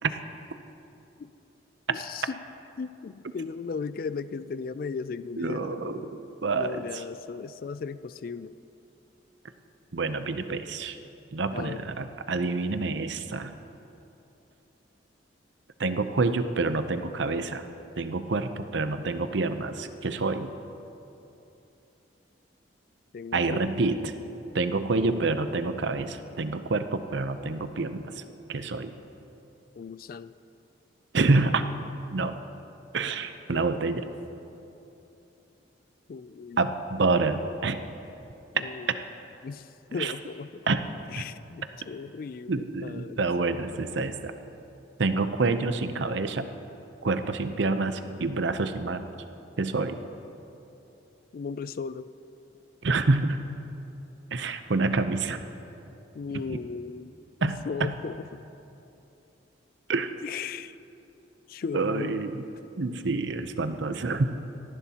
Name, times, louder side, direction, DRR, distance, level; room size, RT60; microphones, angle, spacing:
voice 1, 1.9-2.4 2.8-6.1 6.6-8.5 11.5-11.8 23.1-23.7 29.8-30.3 33.5-33.8 36.1-36.6 37.4-37.5 38.5-39.0 39.4-40.7 41.1-43.2 51.3-52.1 56.1-57.1 57.4-58.4 60.2-60.8 61.5-62.2, left 5 dB, 50° left, 15 dB, 0.3 m, -37 dB
voice 2, 5.4-7.0 9.9-11.0 11.3-13.5 15.8-17.6 18.0-20.5 23.3-24.1 24.5-28.2 28.5-28.9 31.1-31.7 32.1-32.4 32.9-34.0 36.6-37.8 38.5-38.7 40.0-40.1 40.7-40.8 42.5-44.3 45.0-46.5 47.0-49.0 49.6-50.0 52.8-53.5 54.3-55.4 56.5-56.6 57.4-57.9 59.9-60.1 61.7-62.4 62.8-64.3, right 3 dB, 70° right, 9 dB, 0.7 m, -27 dB
18.5 x 14.5 x 2.9 m, 2.8 s
head